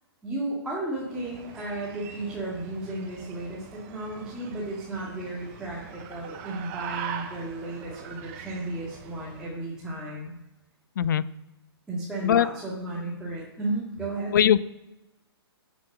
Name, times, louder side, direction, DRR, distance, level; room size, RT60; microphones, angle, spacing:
voice 1, 0.2-10.3 11.9-14.4, right 2 dB, 5° right, -7 dB, 2.7 m, -34 dB
sound 1, 1.0-9.6, right 8 dB, 30° right, 1.3 m, -42 dB
voice 2, 11.0-11.3 12.2-12.5 14.3-14.6, left 10 dB, 50° left, 19 dB, 0.5 m, -20 dB
14.5 x 6.2 x 5.7 m, 1.0 s
figure-of-eight pair, 125°, 14 cm